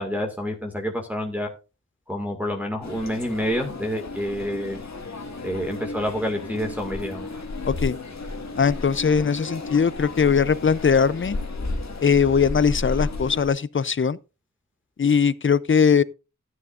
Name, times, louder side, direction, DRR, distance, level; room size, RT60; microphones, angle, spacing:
voice 1, 0.0-1.5 2.1-4.8 5.4-7.3, equal, 5° right, 1.9 m, -28 dB
sound 1, 2.8-13.5, left 2 dB, 60° left, 1.8 m, -33 dB
voice 2, 7.6-8.0 8.6-11.4 12.0-14.2 15.0-16.0, left 6 dB, 40° left, 0.5 m, -20 dB
13.5 x 9.5 x 2.5 m
wide cardioid pair, 75°, 32 cm